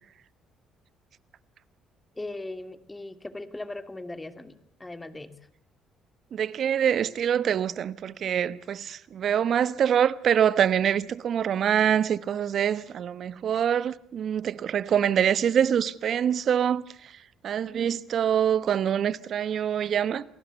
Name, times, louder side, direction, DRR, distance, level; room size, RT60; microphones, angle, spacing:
voice 1, 2.2-5.3, left 2 dB, 15° left, 2.6 m, -39 dB
voice 2, 6.3-17.1 17.4-20.2, right 9 dB, 60° right, 1.1 m, -25 dB
28.0 x 18.0 x 8.1 m
supercardioid pair, 65°, 0 cm